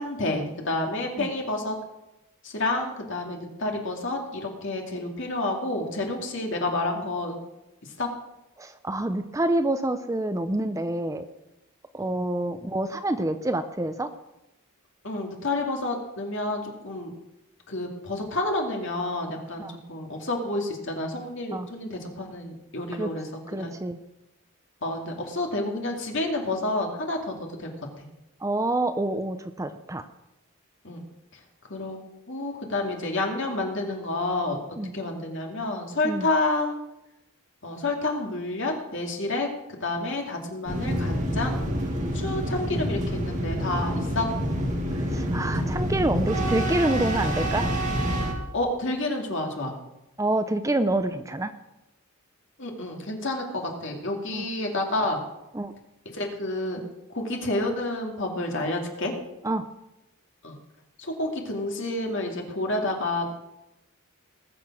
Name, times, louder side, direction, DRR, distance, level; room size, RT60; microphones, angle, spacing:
voice 1, 0.0-1.8 2.4-7.3 7.8-8.1 12.0-12.1 15.0-17.1 17.7-23.7 24.8-27.7 28.0-28.1 30.8-31.0 31.7-32.0 32.3-34.6 34.9-36.8 37.6-41.7 42.1-44.3 48.5-49.7 52.6-55.2 56.1-56.8 57.1-59.1 60.4-60.6 61.0-63.3, left 2 dB, 55° left, 1 dB, 2.4 m, -29 dB
voice 2, 8.6-11.2 11.9-14.1 19.6-19.7 21.5-21.7 23.0-23.1 23.5-24.0 28.4-30.0 34.8-34.9 36.0-36.3 45.0-47.7 50.2-51.5 54.3-54.5 55.5-55.7 59.4-59.7, right 1 dB, 15° right, 10 dB, 0.5 m, -27 dB
sound 1, 40.7-48.3, equal, 35° right, 1.8 m, -27 dB
19.5 x 6.8 x 6.2 m, 0.93 s
head